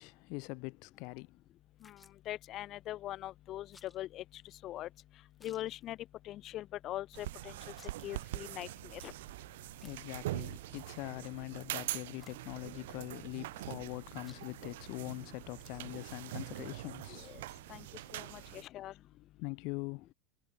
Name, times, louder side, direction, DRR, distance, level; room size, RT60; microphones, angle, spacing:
voice 1, 0.0-1.4 9.8-17.4 18.1-18.6 19.4-20.1, left 31 dB, 60° left, 2.0 m, -43 dB
sound 1, 1.0-1.1 1.8-2.2 3.7-4.0 4.4-4.5 4.8-4.9 5.3-6.0 6.3-6.5 6.8-6.9 7.4-8.2 8.8-8.9 9.8-10.4 11.0-11.8 12.0-12.6 13.1-13.9 14.1-14.8 15.1-15.2 15.6-17.5, left 4 dB, 15° left, 4.4 m, -64 dB
voice 2, 2.3-4.2 4.6-4.9 5.4-6.0 6.2-7.5 8.0-9.1 17.1-17.4 17.7-17.8 18.1-18.9, left 14 dB, 45° left, 0.5 m, -42 dB
sound 2, 7.1-18.6, right 17 dB, 80° right, 0.4 m, -43 dB
supercardioid pair, 120°, 0 cm